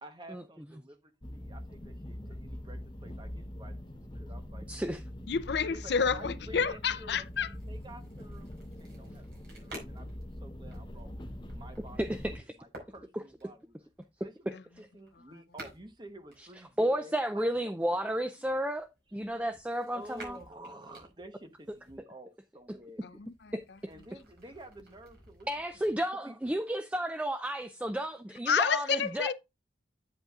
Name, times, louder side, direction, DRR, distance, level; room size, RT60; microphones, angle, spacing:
voice 1, 0.0-4.7 5.2-5.3 5.7-7.3 7.7-8.5 8.8-11.1 11.5-12.2 12.6-13.7 14.2-18.6 19.1-19.2 19.9-23.0 23.9-25.5 25.7-26.0 26.2-26.4, right 1 dB, 25° right, 1.0 m, -51 dB
sound 1, 1.2-12.4, left 1 dB, 25° left, 0.9 m, -43 dB
voice 2, 4.7-5.0 12.0-12.4 16.8-20.4 23.5-23.6 25.5-29.3, right 1 dB, 5° right, 0.3 m, -32 dB
voice 3, 5.3-7.5 14.5-14.6 23.0-23.5 28.5-29.3, left 6 dB, 60° left, 0.5 m, -29 dB
sound 2, 7.1-17.1 17.8-22.0 22.6-25.9, right 1 dB, 55° right, 5.0 m, -54 dB
8.9 x 8.0 x 2.4 m
head